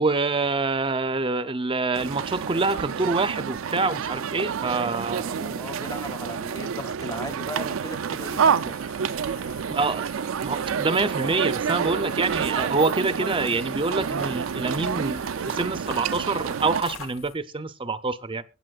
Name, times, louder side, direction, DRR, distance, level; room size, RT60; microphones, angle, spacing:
voice 1, 0.0-5.2 9.7-10.1 10.4-18.4, right 3 dB, 25° right, 0.6 m, -26 dB
sound 1, 1.9-16.8, right 7 dB, 75° right, 0.4 m, -28 dB
voice 2, 5.2-9.0, left 1 dB, 15° left, 0.6 m, -37 dB
sound 2, 7.8-17.4, left 5 dB, 80° left, 2.0 m, -46 dB
23.0 x 8.4 x 2.4 m
head